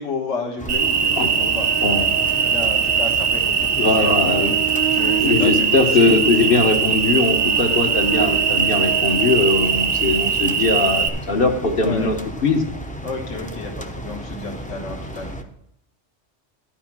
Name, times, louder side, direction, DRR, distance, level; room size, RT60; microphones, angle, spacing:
voice 1, 0.0-1.7 2.4-4.1 4.9-6.1 11.8-12.1 13.0-15.3, left 4 dB, 70° left, -1 dB, 1.7 m, -31 dB
sound 1, 0.6-15.4, right 1 dB, 10° left, 0.6 m, -34 dB
Cricket, 0.7-11.1, right 7 dB, 55° right, 0.8 m, -20 dB
voice 2, 1.8-2.3 3.8-4.5 5.2-12.2 12.4-12.6, left 3 dB, 50° left, 4 dB, 1.2 m, -20 dB
12.0 x 5.3 x 6.0 m, 0.75 s
omnidirectional pair, 1.3 m